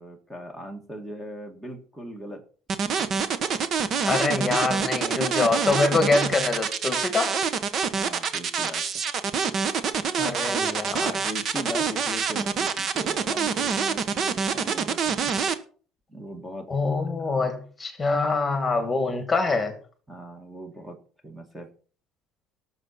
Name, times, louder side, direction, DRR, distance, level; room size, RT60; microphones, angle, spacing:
voice 1, 0.0-2.4 2.8-3.2 7.9-8.8 11.2-15.3 16.1-16.7 17.2-17.5 20.1-21.0 21.2-21.7, equal, 5° right, 1.8 m, -39 dB
sound 1, 2.7-15.5, right 6 dB, 40° right, 1.1 m, -26 dB
voice 2, 4.0-7.4 10.2-11.2 16.7-19.8, left 3 dB, 15° left, 2.4 m, -25 dB
18.5 x 7.0 x 4.3 m
cardioid pair, 155°, 0 cm